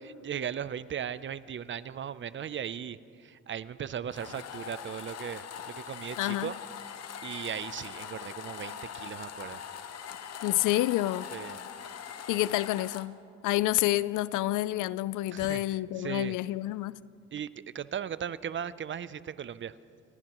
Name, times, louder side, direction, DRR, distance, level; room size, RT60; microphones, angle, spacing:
voice 1, 0.2-6.6 6.9-9.6 11.3-11.6 15.3-16.3 17.3-17.5 17.7-19.7, right 8 dB, 40° right, 0.5 m, -37 dB
sound 1, 4.1-13.1, left 8 dB, 55° left, 0.9 m, -42 dB
voice 2, 6.2-6.5 10.4-11.3 12.3-13.2 13.4-17.0, left 16 dB, 85° left, 0.4 m, -28 dB
29.5 x 15.5 x 3.0 m
cardioid pair, 90°, 30 cm